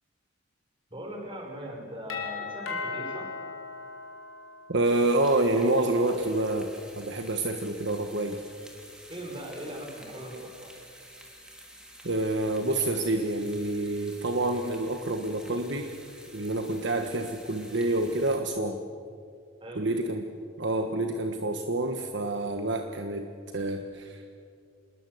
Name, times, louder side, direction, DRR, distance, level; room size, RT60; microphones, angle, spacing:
voice 1, 0.9-3.4 9.1-10.8 19.6-19.9, right 1 dB, 25° right, 1 dB, 5.4 m, -40 dB
Doorbell, 2.1-4.9, left 4 dB, 75° left, 4.2 m, -37 dB
voice 2, 4.7-6.7 6.9-8.4 12.0-16.0 16.3-18.8 19.8-20.3 20.6-24.4, right 2 dB, 60° right, 5 dB, 1.4 m, -28 dB
sound 1, 4.8-18.4, equal, 5° right, 3.0 m, -50 dB
27.0 x 21.0 x 7.9 m, 2.3 s
head